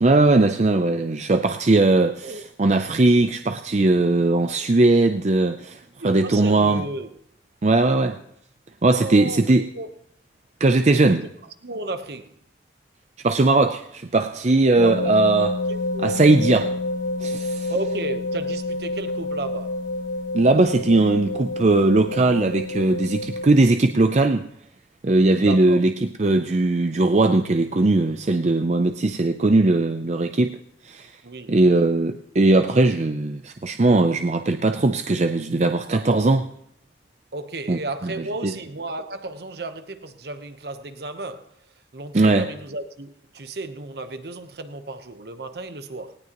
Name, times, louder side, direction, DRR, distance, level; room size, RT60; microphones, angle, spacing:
voice 1, 0.0-6.8 7.6-8.2 8.8-9.7 10.6-11.2 13.2-15.6 16.0-16.7 17.2-17.7 20.3-24.5 25.0-30.6 30.9-31.1 31.5-36.4 37.7-38.1 38.4-38.5 42.1-42.5, right 2 dB, 40° right, 0.5 m, -19 dB
voice 2, 6.0-7.1 9.0-9.9 11.0-11.2 11.6-12.3 14.8-15.3 15.7-16.2 17.7-19.8 25.4-25.8 31.2-31.6 35.9-36.2 37.3-41.5 41.9-46.2, right 2 dB, 60° right, 1.0 m, -33 dB
sound 1, 14.8-23.5, left 2 dB, 85° left, 1.3 m, -28 dB
18.5 x 17.5 x 3.0 m
head